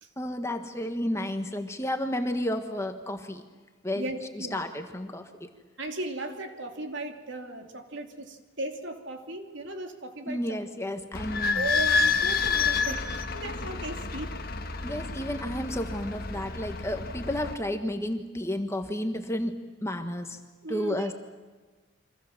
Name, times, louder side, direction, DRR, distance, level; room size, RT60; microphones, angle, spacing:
voice 1, 0.2-3.4 3.8-4.1 4.3-5.5 10.3-11.7 14.8-20.4 20.7-21.1, left 1 dB, 15° left, 6 dB, 1.6 m, -32 dB
voice 2, 3.9-4.6 5.8-10.6 11.5-13.0 13.3-14.3 20.6-21.1, right 2 dB, 60° right, 5 dB, 3.0 m, -36 dB
Idling / Squeak, 11.1-17.5, left 4 dB, 45° left, 1.6 m, -29 dB
29.5 x 25.0 x 7.4 m, 1.3 s
head